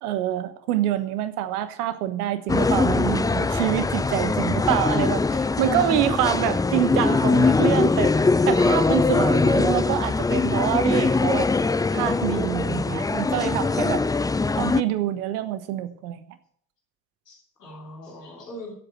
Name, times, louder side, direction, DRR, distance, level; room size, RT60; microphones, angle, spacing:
voice 1, 0.0-8.1 8.5-11.5 11.9-14.0 14.6-16.2, right 12 dB, 70° right, 12 dB, 1.3 m, -26 dB
sound 1, 2.5-14.8, left 3 dB, 10° left, 0.5 m, -22 dB
voice 2, 17.2-18.7, left 1 dB, 85° left, -1 dB, 3.3 m, -43 dB
16.0 x 8.0 x 6.1 m, 0.63 s
figure-of-eight pair, 50°, 46 cm